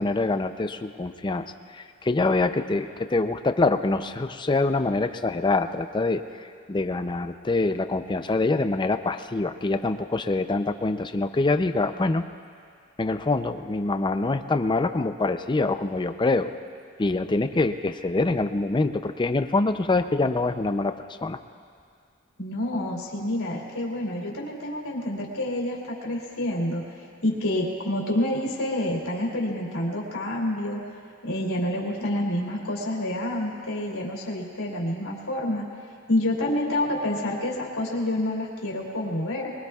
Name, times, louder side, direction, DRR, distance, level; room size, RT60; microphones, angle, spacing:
voice 1, 0.0-1.5 1.7-12.3 13.0-16.5 17.0-20.9 21.2-21.4, left 3 dB, 20° left, 9 dB, 0.5 m, -25 dB
voice 2, 22.4-30.8 31.2-35.6 36.1-39.5, left 1 dB, 80° left, -2 dB, 2.9 m, -28 dB
23.0 x 22.0 x 2.4 m, 2.2 s
head